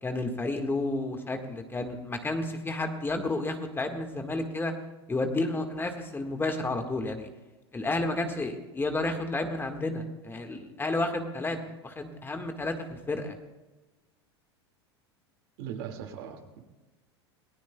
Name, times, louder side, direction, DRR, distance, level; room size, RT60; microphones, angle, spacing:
voice 1, 0.0-4.7 5.1-7.3 7.7-11.6 11.8-13.3, left 2 dB, 15° left, 5 dB, 1.7 m, -31 dB
voice 2, 15.6-16.6, right 8 dB, 60° right, 3 dB, 2.3 m, -39 dB
27.5 x 18.5 x 2.3 m, 1.2 s
hypercardioid pair, 85°, 14 cm